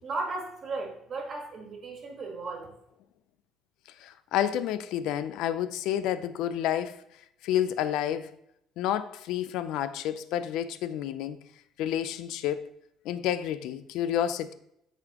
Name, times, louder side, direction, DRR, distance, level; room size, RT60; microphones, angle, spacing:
voice 1, 0.0-2.7, right 3 dB, 35° right, 1.6 m, -35 dB
voice 2, 4.0-7.0 7.4-8.3 8.8-11.4 11.8-12.7 13.0-14.5, left 10 dB, 75° left, 0.4 m, -30 dB
12.5 x 4.1 x 2.9 m
cardioid pair, 160°, 0 cm